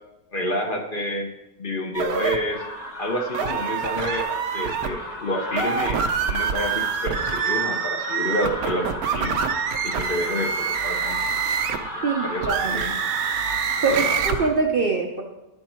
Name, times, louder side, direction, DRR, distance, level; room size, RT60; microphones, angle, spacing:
voice 1, 0.3-1.3 1.6-2.6 3.0-9.4 9.8-11.3 12.0-13.0 13.9-14.0, left 1 dB, 45° left, 2 dB, 0.7 m, -29 dB
sound 1, 1.9-2.4 3.3-4.9 5.5-11.9 12.4-14.4, right 7 dB, 75° right, 1.0 m, -26 dB
sound 2, 2.5-14.5, left 1 dB, 30° left, 1.2 m, -34 dB
voice 2, 12.0-12.8 13.8-15.2, right 4 dB, 55° right, 2 dB, 0.6 m, -23 dB
11.0 x 4.5 x 4.3 m, 1.0 s
omnidirectional pair, 1.6 m